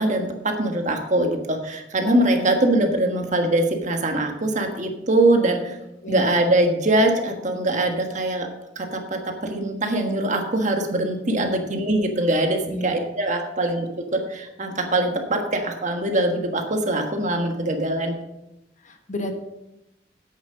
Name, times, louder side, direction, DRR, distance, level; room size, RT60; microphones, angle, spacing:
voice 1, 0.0-5.8 6.1-8.5 8.8-18.2, right 1 dB, 40° right, 4 dB, 1.5 m, -22 dB
voice 2, 6.0-6.3 11.3-11.6 12.6-12.9 18.8-19.4, equal, 45° left, 6 dB, 1.2 m, -31 dB
10.0 x 8.3 x 5.1 m, 0.90 s
head